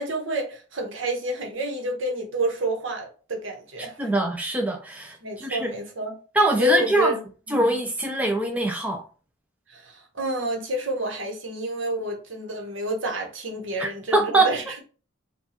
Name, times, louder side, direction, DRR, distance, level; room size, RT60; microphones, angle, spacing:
voice 1, 0.0-4.1 5.2-6.2 6.6-7.2 7.5-7.8 9.7-14.8, right 1 dB, 65° right, 1.0 m, -29 dB
voice 2, 4.0-5.7 6.3-7.2 7.5-9.0 13.8-14.5, right 2 dB, 5° right, 0.3 m, -23 dB
4.5 x 2.3 x 2.8 m
head